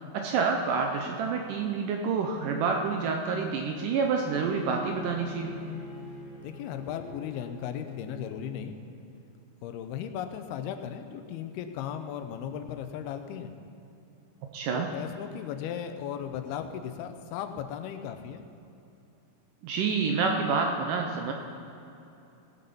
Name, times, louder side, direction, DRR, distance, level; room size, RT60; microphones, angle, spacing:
voice 1, 0.1-5.5 14.5-14.9 19.6-21.3, right 5 dB, 75° right, 3 dB, 2.0 m, -28 dB
Bowed string instrument, 4.1-9.2, left 1 dB, 30° left, 3.1 m, -44 dB
voice 2, 6.4-8.8 9.6-13.5 14.7-18.5, left 9 dB, 85° left, 7 dB, 2.7 m, -36 dB
17.5 x 8.0 x 5.4 m, 2.8 s
omnidirectional pair, 4.5 m